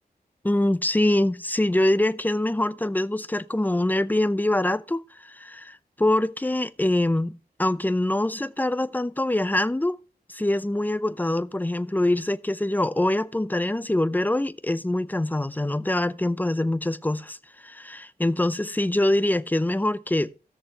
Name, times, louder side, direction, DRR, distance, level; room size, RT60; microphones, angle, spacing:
voice 1, 0.4-10.0 10.3-17.4 17.6-20.3, left 1 dB, 10° left, 0.6 m, -24 dB
17.0 x 6.7 x 2.9 m
wide cardioid pair, 70°, 17 cm